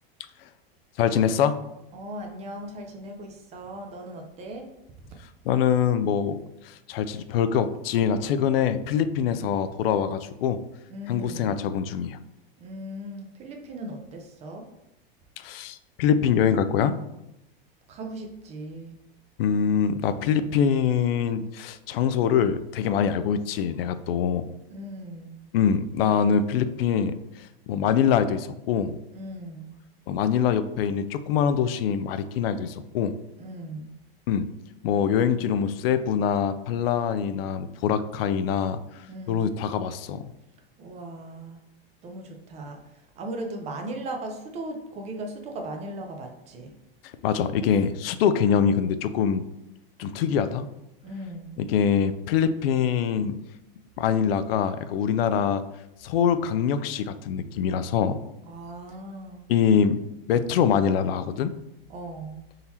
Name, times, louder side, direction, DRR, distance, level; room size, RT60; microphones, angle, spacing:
voice 1, 1.0-1.6 5.5-6.4 6.6-10.6 11.1-12.2 15.4-16.9 19.4-24.5 25.5-29.0 30.1-33.1 34.3-34.5 34.8-38.8 39.3-40.2 47.2-49.4 50.0-50.7 51.6-53.3 54.0-55.6 56.0-58.2 59.5-60.0 60.3-61.5, left 7 dB, 75° left, 12 dB, 0.4 m, -24 dB
voice 2, 1.9-4.7 10.9-11.5 12.6-14.7 17.9-19.0 20.1-20.4 24.7-25.4 29.1-29.7 33.4-33.9 39.1-39.5 40.8-41.6 42.0-46.7 51.0-51.6 58.5-59.4 61.9-62.4, right 1 dB, 20° right, 3 dB, 0.5 m, -38 dB
3.8 x 2.8 x 4.2 m, 0.88 s
supercardioid pair, 150°, 30 cm